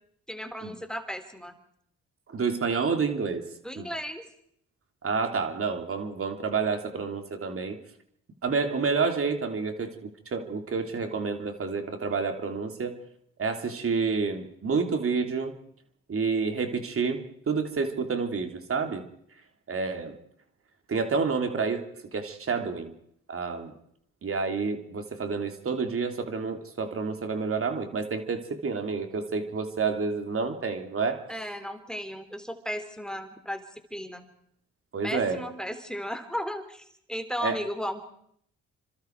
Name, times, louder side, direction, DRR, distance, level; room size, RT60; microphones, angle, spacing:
voice 1, 0.3-1.6 3.6-4.2 31.3-33.6 33.9-34.3 35.0-38.0, equal, ahead, 7 dB, 3.4 m, -35 dB
voice 2, 2.3-3.4 3.8-3.9 5.0-7.8 8.4-12.9 13.4-15.5 16.1-19.0 19.7-20.1 20.9-22.9 23.3-23.7 24.2-31.2 34.9-35.4 37.4-37.6, right 5 dB, 45° right, 5 dB, 3.3 m, -29 dB
28.5 x 25.5 x 4.7 m, 0.68 s
supercardioid pair, 70°, 30 cm